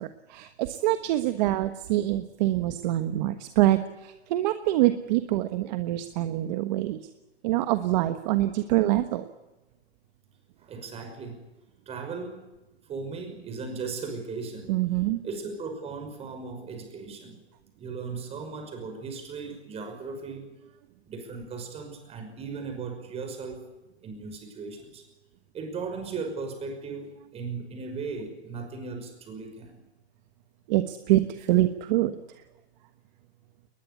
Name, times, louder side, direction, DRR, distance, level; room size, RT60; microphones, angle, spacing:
voice 1, 0.0-7.0 7.4-9.2 14.7-15.2 30.7-32.1, right 15 dB, 40° right, 9 dB, 1.3 m, -25 dB
voice 2, 10.6-11.4 11.9-12.4 12.9-14.7 15.2-17.4 17.8-20.5 21.1-23.7 24.0-25.0 25.5-29.8, right 4 dB, 20° right, 5 dB, 5.7 m, -37 dB
21.0 x 20.5 x 8.5 m, 1.0 s
hypercardioid pair, 150°, 33 cm